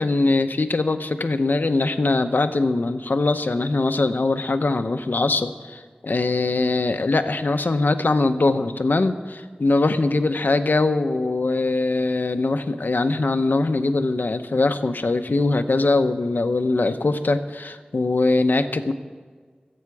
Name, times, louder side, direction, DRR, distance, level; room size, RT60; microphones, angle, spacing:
voice 1, 0.0-18.9, left 3 dB, 85° left, 8 dB, 0.9 m, -22 dB
25.0 x 8.9 x 4.8 m, 1.5 s
wide cardioid pair, 45°, 3 cm